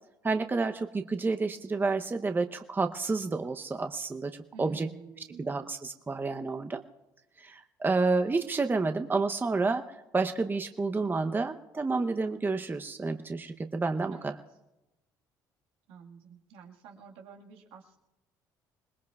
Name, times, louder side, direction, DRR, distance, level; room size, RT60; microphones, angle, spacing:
voice 1, 0.2-4.9 5.4-6.8 7.4-9.8 10.1-14.4, right 3 dB, 20° right, 6 dB, 0.8 m, -30 dB
voice 2, 4.5-5.7 14.1-14.4 15.9-18.0, right 5 dB, 75° right, 1 dB, 1.8 m, -50 dB
26.0 x 20.0 x 2.4 m, 0.99 s
supercardioid pair, 65°, 9 cm